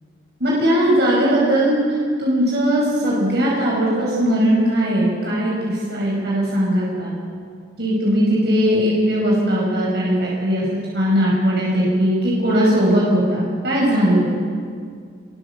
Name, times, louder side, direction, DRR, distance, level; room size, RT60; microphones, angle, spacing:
voice 1, 0.4-1.8 2.2-7.1 7.8-14.4, equal, 65° right, -4 dB, 5.5 m, -19 dB
24.5 x 22.5 x 7.2 m, 2.1 s
head